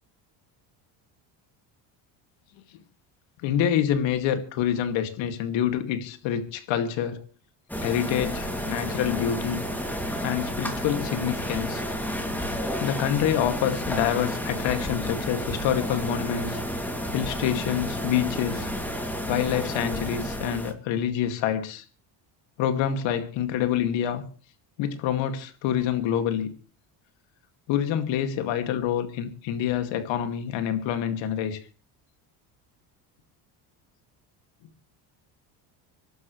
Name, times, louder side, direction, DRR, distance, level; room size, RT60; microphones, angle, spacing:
voice 1, 3.4-7.2 7.8-9.6 10.2-11.8 12.8-16.6 17.1-18.7 19.3-21.8 22.6-24.2 24.8-26.5 27.7-31.6, left 9 dB, 75° left, 8 dB, 2.4 m, -27 dB
sound 1, 7.7-20.7, equal, 5° left, 2.6 m, -31 dB
26.0 x 12.0 x 3.2 m, 0.36 s
cardioid pair, 110°, 46 cm